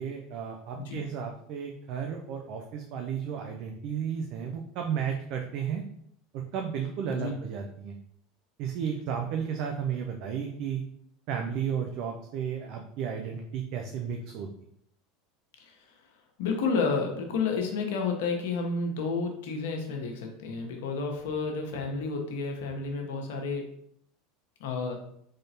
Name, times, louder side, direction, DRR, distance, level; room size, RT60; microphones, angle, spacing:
voice 1, 0.0-5.8 6.3-7.9 8.6-10.8 11.3-14.5, right 7 dB, 60° right, 3 dB, 0.5 m, -33 dB
voice 2, 16.4-23.6 24.6-25.0, left 4 dB, 70° left, 3 dB, 0.8 m, -31 dB
3.8 x 3.3 x 2.7 m, 0.71 s
hypercardioid pair, 85°, 0 cm